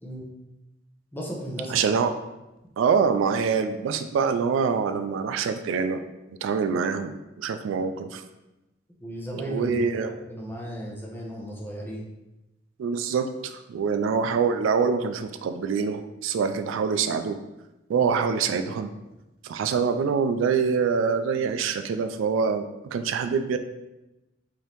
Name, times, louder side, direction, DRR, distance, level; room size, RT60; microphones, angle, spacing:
voice 1, 0.0-0.3 1.1-1.9 9.0-12.1 18.0-18.1, equal, 10° left, -3 dB, 0.7 m, -35 dB
voice 2, 1.7-2.1 2.8-6.0 6.3-8.2 9.3-10.1 12.8-17.4 17.9-18.9 19.4-23.6, right 6 dB, 80° right, 9 dB, 0.3 m, -25 dB
5.0 x 2.7 x 3.0 m, 0.98 s
head